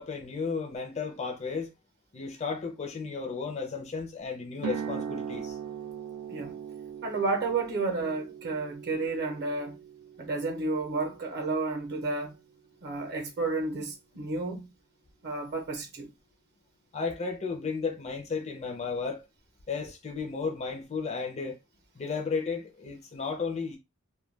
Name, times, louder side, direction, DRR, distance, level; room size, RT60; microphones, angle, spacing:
voice 1, 0.0-1.7 2.1-5.6 16.9-19.2 19.7-21.6 22.0-23.8, left 5 dB, 30° left, 0.5 m, -34 dB
sound 1, 4.6-12.6, right 7 dB, 90° right, 0.3 m, -40 dB
voice 2, 7.0-9.8 10.2-12.3 12.8-14.7 15.2-16.1, right 3 dB, 50° right, 0.7 m, -31 dB
2.2 x 2.2 x 3.2 m
head